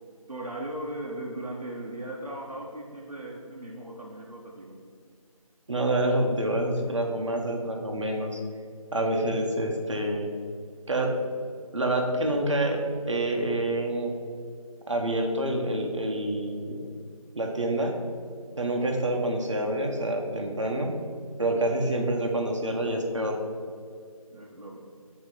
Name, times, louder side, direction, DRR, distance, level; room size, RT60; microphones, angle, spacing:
voice 1, 0.3-4.9 24.3-24.8, right 1 dB, 90° right, -3 dB, 0.9 m, -38 dB
voice 2, 5.7-8.4 8.9-10.3 10.9-11.1 11.7-12.8 13.1-14.1 14.9-16.7 17.3-18.0 18.6-20.9 21.4-23.4, right 1 dB, 55° right, 2 dB, 0.8 m, -27 dB
6.4 x 2.9 x 5.7 m, 2.2 s
figure-of-eight pair, 165°, 19 cm